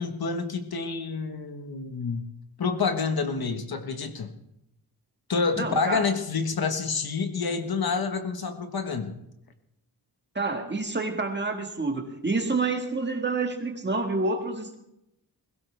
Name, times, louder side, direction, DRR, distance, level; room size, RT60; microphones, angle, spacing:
voice 1, 0.0-2.2 2.6-4.3 5.3-9.1, left 4 dB, 60° left, 7 dB, 1.4 m, -28 dB
voice 2, 5.6-6.0 10.4-14.8, right 3 dB, 25° right, 4 dB, 1.8 m, -28 dB
22.0 x 16.5 x 3.4 m, 0.83 s
wide cardioid pair, 150°, 41 cm